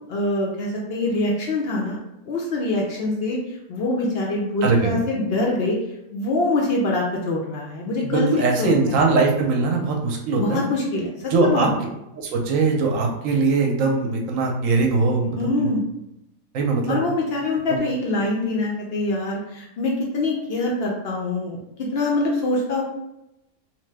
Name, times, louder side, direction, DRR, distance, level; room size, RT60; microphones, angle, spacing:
voice 1, 0.1-2.0 2.3-3.4 3.7-5.8 6.1-8.3 8.6-9.0 10.4-11.7 15.3-15.8 16.9-21.6 21.9-22.8, left 2 dB, 70° left, -2 dB, 0.5 m, -24 dB
voice 2, 4.6-5.0 8.0-10.6 11.3-11.7 12.2-15.7 16.5-17.0 17.7-17.8, right 3 dB, 70° right, 1 dB, 0.9 m, -21 dB
2.9 x 2.0 x 3.2 m, 0.87 s
omnidirectional pair, 1.5 m